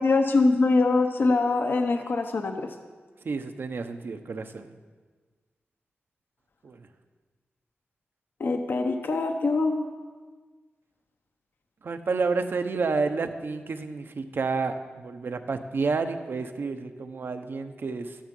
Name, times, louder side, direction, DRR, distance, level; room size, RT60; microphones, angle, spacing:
voice 1, 0.0-2.7 8.4-9.9, left 3 dB, 60° left, 5 dB, 0.9 m, -23 dB
voice 2, 3.2-4.7 6.6-6.8 11.8-18.2, right 4 dB, 60° right, 8 dB, 0.9 m, -30 dB
13.0 x 10.0 x 5.4 m, 1.4 s
wide cardioid pair, 110°, 4 cm